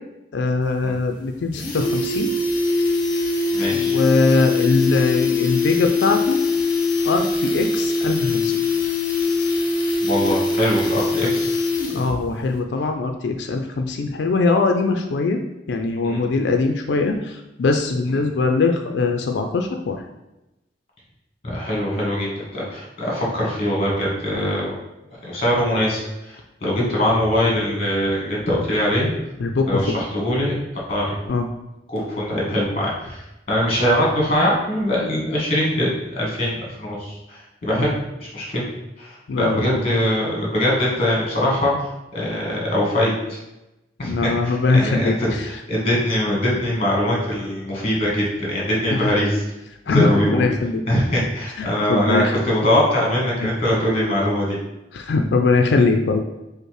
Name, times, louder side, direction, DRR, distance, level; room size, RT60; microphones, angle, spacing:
voice 1, 0.3-2.3 3.7-6.4 7.0-8.6 11.9-15.4 15.7-20.0 29.4-30.0 31.3-31.5 37.7-37.9 39.3-39.8 44.0-45.5 48.9-49.1 49.9-50.8 51.6-52.3 53.4-53.5 54.9-56.2, left 3 dB, 85° left, 4 dB, 0.4 m, -21 dB
sound 1, 0.6-0.7 1.0-1.1 1.4-12.2 12.5-12.6, left 3 dB, 50° left, 0.7 m, -22 dB
voice 2, 3.5-4.0 10.0-11.5 16.0-16.3 21.4-24.7 25.2-29.1 29.7-30.5 30.9-31.1 31.9-38.7 39.0-41.7 42.1-43.4 44.0-49.4 49.9-50.5 50.9-54.6, equal, 35° left, -4 dB, 1.5 m, -22 dB
5.2 x 2.1 x 4.7 m, 0.95 s
head